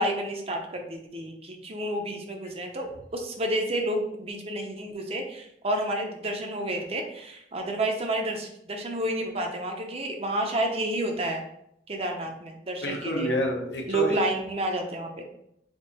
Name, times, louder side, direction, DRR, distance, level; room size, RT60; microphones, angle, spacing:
voice 1, 0.0-11.4 11.9-13.3 13.9-15.2, right 1 dB, 35° right, 3 dB, 0.6 m, -30 dB
voice 2, 12.8-14.2, left 1 dB, 75° left, 1 dB, 0.9 m, -29 dB
3.6 x 2.9 x 4.0 m, 0.76 s
head